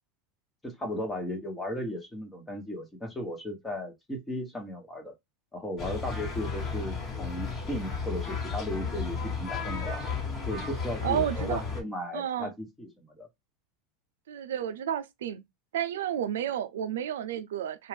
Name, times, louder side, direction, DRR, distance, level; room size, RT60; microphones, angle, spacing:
voice 1, 0.6-5.1 5.5-10.0 10.5-13.3, left 1 dB, 15° left, 1.2 m, -36 dB
sound 1, 5.8-11.8, left 5 dB, 35° left, 1.5 m, -33 dB
voice 2, 11.0-11.6 12.1-12.5 14.3-15.4 15.7-17.9, right 10 dB, 85° right, 0.4 m, -31 dB
2.6 x 2.4 x 3.3 m
hypercardioid pair, 95°, 0 cm